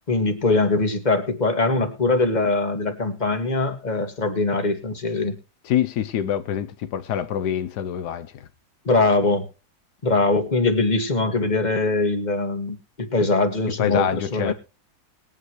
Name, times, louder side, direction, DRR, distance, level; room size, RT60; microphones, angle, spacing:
voice 1, 0.1-5.4 8.9-9.4 10.0-14.5, left 3 dB, 25° left, 2.0 m, -22 dB
voice 2, 5.6-8.5 13.8-14.5, left 10 dB, 85° left, 1.4 m, -25 dB
21.0 x 9.2 x 3.1 m
omnidirectional pair, 1.7 m